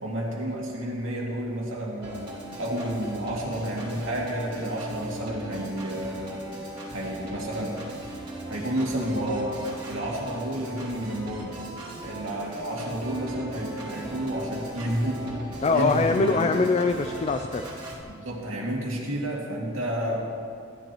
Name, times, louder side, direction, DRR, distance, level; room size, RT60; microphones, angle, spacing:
voice 1, 0.0-2.2 2.6-6.5 6.9-7.8 8.4-9.6 9.9-11.6 12.0-15.3 15.7-16.6 18.1-20.3, right 1 dB, 90° right, -3 dB, 2.4 m, -30 dB
Organ, 2.0-18.0, right 1 dB, 25° right, 2.5 m, -39 dB
voice 2, 15.6-17.7, left 3 dB, 35° left, 7 dB, 0.4 m, -23 dB
15.5 x 11.0 x 3.0 m, 2.3 s
head